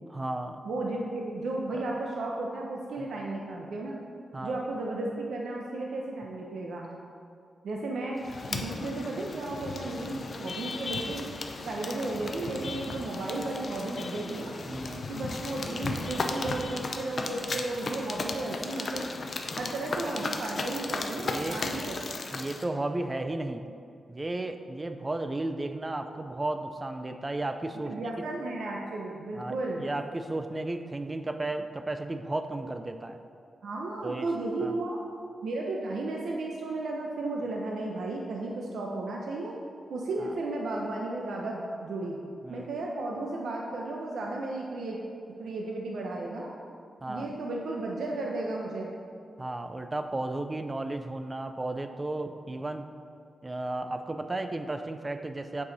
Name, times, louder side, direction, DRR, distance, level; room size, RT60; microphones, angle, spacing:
voice 1, 0.1-0.6 1.7-1.9 3.0-3.1 4.3-4.6 14.7-15.1 17.5-17.6 19.5-19.7 21.3-21.6 22.3-23.6 24.1-28.1 29.3-33.2 34.0-34.3 34.6-34.7 40.2-40.3 42.4-42.7 47.0-47.3 49.4-52.9 53.4-55.6, right 2 dB, 20° right, 8 dB, 0.3 m, -34 dB
voice 2, 0.6-4.0 4.4-6.9 7.6-8.2 8.5-11.3 11.6-14.5 15.1-19.1 19.6-22.2 27.8-29.9 33.6-35.0 35.4-39.6 39.9-42.2 42.5-45.0 45.4-46.5 47.1-48.9, right 2 dB, 85° right, -1 dB, 0.7 m, -34 dB
sound 1, 8.2-22.6, left 3 dB, 40° left, 0.5 m, -36 dB
8.5 x 4.7 x 4.0 m, 2.4 s
wide cardioid pair, 170°, 0 cm